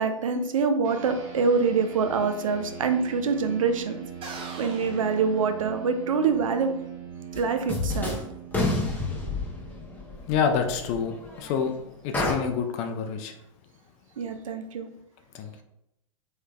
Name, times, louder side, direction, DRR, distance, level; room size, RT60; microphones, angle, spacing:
voice 1, 0.0-4.0 4.6-6.7 7.4-8.2 14.2-14.9, right 5 dB, 75° right, 7 dB, 0.4 m, -25 dB
sound 1, 0.8-10.6, right 8 dB, 50° right, 1.3 m, -41 dB
sound 2, 4.2-6.1, right 3 dB, 30° right, 0.7 m, -41 dB
sound 3, 7.3-7.4 7.7-8.2 8.5-11.6 12.1-12.3, left 2 dB, 10° left, 0.8 m, -29 dB
voice 2, 10.3-11.7 12.0-13.3 15.3-15.5, left 6 dB, 40° left, 5 dB, 0.4 m, -27 dB
3.3 x 3.2 x 2.2 m, 0.82 s
figure-of-eight pair, 95°, 17 cm